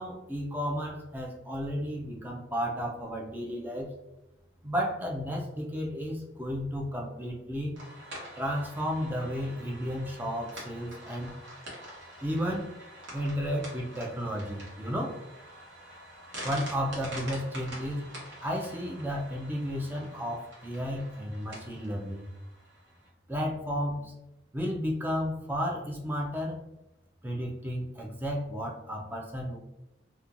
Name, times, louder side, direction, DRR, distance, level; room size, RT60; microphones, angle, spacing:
voice 1, 0.0-3.9 4.6-7.7 8.4-11.4 12.2-12.7 13.1-15.2 16.4-18.0 18.4-22.2 23.3-24.1 24.5-26.6 27.2-29.6, equal, 10° right, -1 dB, 0.3 m, -33 dB
sound 1, 7.7-23.1, equal, 75° right, 1.0 m, -46 dB
2.9 x 2.2 x 2.4 m, 0.95 s
head